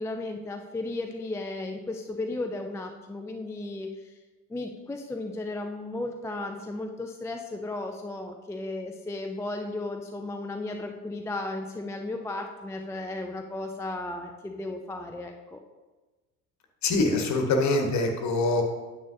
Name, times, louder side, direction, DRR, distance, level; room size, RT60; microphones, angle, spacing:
voice 1, 0.0-3.9 4.5-15.6, left 2 dB, 5° left, 3 dB, 0.4 m, -35 dB
voice 2, 16.8-18.6, left 2 dB, 40° left, 4 dB, 1.5 m, -24 dB
9.3 x 8.9 x 2.7 m, 1.2 s
figure-of-eight pair, 60°, 45 cm